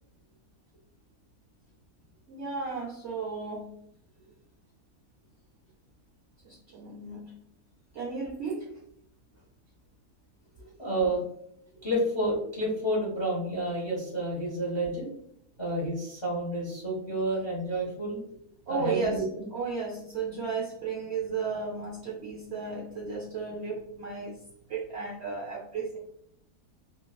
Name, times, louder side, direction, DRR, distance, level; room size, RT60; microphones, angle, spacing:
voice 1, 2.3-3.7 6.4-7.3 7.9-8.8 18.7-19.2 19.5-24.4 24.7-26.0, right 4 dB, 70° right, -3 dB, 0.6 m, -34 dB
voice 2, 10.6-11.2 11.8-15.1 15.6-18.4 18.7-19.2, right 1 dB, 35° left, -4 dB, 0.4 m, -30 dB
3.1 x 2.4 x 2.3 m, 0.72 s
omnidirectional pair, 1.7 m